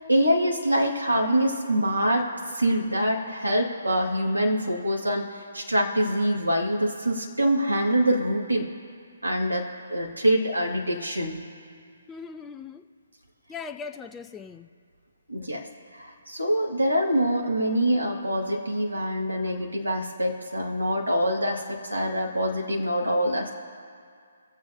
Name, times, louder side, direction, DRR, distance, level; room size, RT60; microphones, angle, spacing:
voice 1, 0.1-5.3 5.5-8.7 9.2-11.4 15.3-15.7 15.9-23.5, equal, 85° right, 0 dB, 2.1 m, -25 dB
voice 2, 12.1-12.8 13.5-14.7 23.0-23.1, left 5 dB, 10° left, 6 dB, 0.5 m, -39 dB
23.0 x 7.7 x 2.8 m, 2.2 s
figure-of-eight pair, 135°, 0 cm